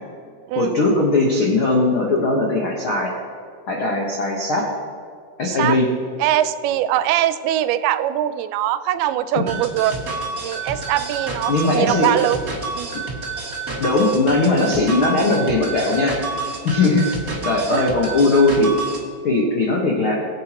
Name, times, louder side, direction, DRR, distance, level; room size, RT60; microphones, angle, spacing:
voice 1, 0.5-3.1 3.7-4.7 5.4-5.9 11.5-12.1 13.8-16.2 16.6-17.1 17.4-18.7 19.2-20.2, left 2 dB, 75° left, -2 dB, 1.2 m, -19 dB
voice 2, 5.4-5.8 6.2-10.0 10.4-12.4 12.8-12.9 16.8-17.0 17.7-17.9, right 12 dB, 85° right, 13 dB, 2.5 m, -22 dB
sound 1, 9.5-19.0, right 4 dB, 65° right, 0.8 m, -29 dB
20.5 x 8.5 x 2.9 m, 2.2 s
omnidirectional pair, 4.4 m